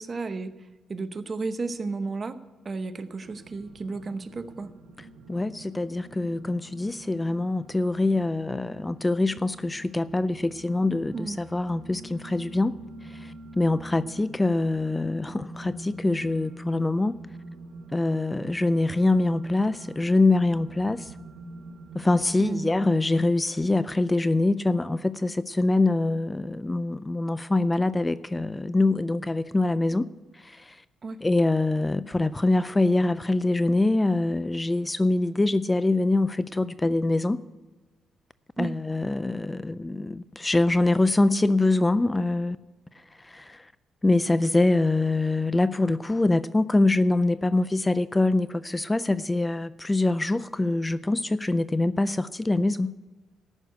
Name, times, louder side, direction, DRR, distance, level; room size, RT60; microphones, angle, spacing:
voice 1, 0.0-2.4 2.6-4.7 11.1-11.4 22.4-22.7 31.0-31.2 38.6-38.7, right 3 dB, 35° right, 0.9 m, -33 dB
sound 1, 3.2-23.2, right 2 dB, 85° right, 2.2 m, -45 dB
voice 2, 5.3-12.7 13.0-17.2 17.9-21.1 21.9-30.1 30.3-30.8 31.2-37.4 38.6-42.6 43.2-43.7 44.0-52.9, left 2 dB, 15° left, 0.3 m, -24 dB
14.0 x 6.3 x 8.1 m
cardioid pair, 90°, 0 cm